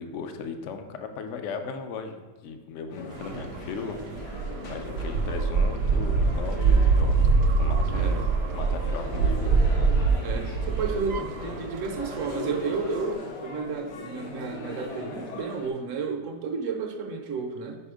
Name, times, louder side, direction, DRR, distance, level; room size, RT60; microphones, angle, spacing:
voice 1, 0.0-4.0 4.6-8.3 8.5-9.6, left 5 dB, 60° left, 7 dB, 0.8 m, -37 dB
sound 1, 2.9-15.7, left 2 dB, 80° left, 1.6 m, -40 dB
sound 2, 3.1-13.1, right 4 dB, 80° right, 1.2 m, -25 dB
voice 2, 7.9-8.2 10.2-17.8, right 4 dB, 60° right, 4 dB, 0.9 m, -32 dB
5.2 x 4.9 x 4.9 m, 1.4 s
omnidirectional pair, 1.8 m